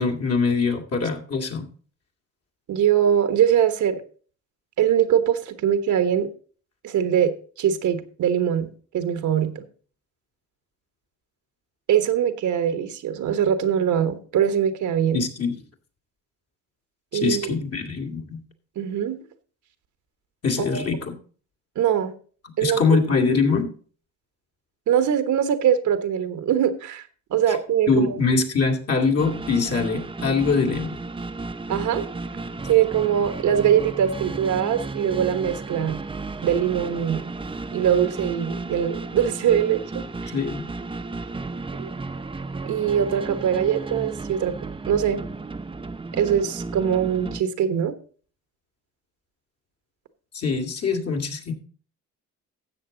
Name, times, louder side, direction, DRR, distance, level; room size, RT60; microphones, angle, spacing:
voice 1, 0.0-1.7 15.1-15.6 17.1-18.4 20.4-21.1 22.6-23.7 27.5-27.6 27.9-31.0 40.3-40.7 50.3-51.5, left 4 dB, 55° left, 2 dB, 2.4 m, -23 dB
voice 2, 2.7-4.0 4.8-6.3 6.8-9.7 11.9-15.2 17.1-17.5 18.8-19.2 20.6-20.8 21.7-22.1 22.6-22.8 24.9-28.2 31.7-32.1 32.7-36.0 36.4-37.2 37.7-40.3 41.7-41.9 42.7-44.5 44.9-45.2 46.1-47.9, right 9 dB, 75° right, 10 dB, 1.3 m, -22 dB
sound 1, 29.2-47.4, right 3 dB, 15° right, 0.7 m, -34 dB
13.0 x 7.8 x 3.9 m, 0.42 s
cardioid pair, 90°, 30 cm